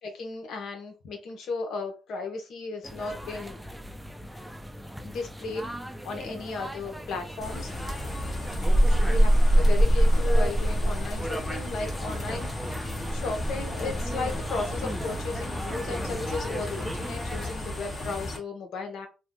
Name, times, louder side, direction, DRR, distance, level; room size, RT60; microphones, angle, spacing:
voice 1, 0.0-3.6 5.0-5.7 6.0-7.7 8.9-12.5 13.1-19.1, left 3 dB, 70° left, 4 dB, 0.8 m, -35 dB
sound 1, 2.8-17.5, equal, 5° right, 0.4 m, -37 dB
sound 2, 7.4-18.4, equal, 30° left, 1.2 m, -26 dB
2.6 x 2.2 x 3.5 m, 0.31 s
cardioid pair, 90°, 0 cm